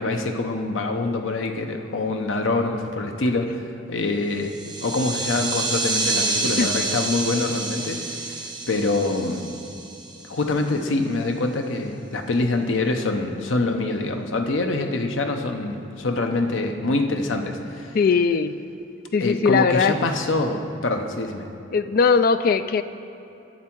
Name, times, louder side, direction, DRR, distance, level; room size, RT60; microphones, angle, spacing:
voice 1, 0.0-4.5 4.8-9.5 10.3-18.0 19.2-21.5, left 2 dB, 85° left, 5 dB, 0.8 m, -25 dB
sound 1, 4.4-10.5, right 3 dB, 25° right, 0.9 m, -28 dB
voice 2, 17.9-18.5 19.1-19.9 21.7-22.8, left 5 dB, 50° left, 12 dB, 0.3 m, -19 dB
11.0 x 7.4 x 4.5 m, 2.8 s
head